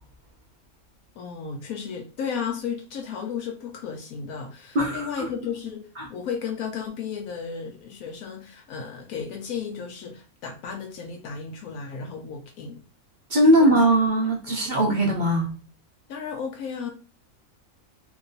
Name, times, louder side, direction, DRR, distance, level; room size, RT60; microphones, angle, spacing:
voice 1, 1.2-12.8 13.4-13.8 14.5-14.8 16.1-16.9, left 6 dB, 75° left, 1.0 m, -34 dB
voice 2, 4.7-5.3 6.0-6.1 13.3-15.5, right 1 dB, 45° right, 0.7 m, -20 dB
3.0 x 2.6 x 3.9 m
omnidirectional pair, 1.5 m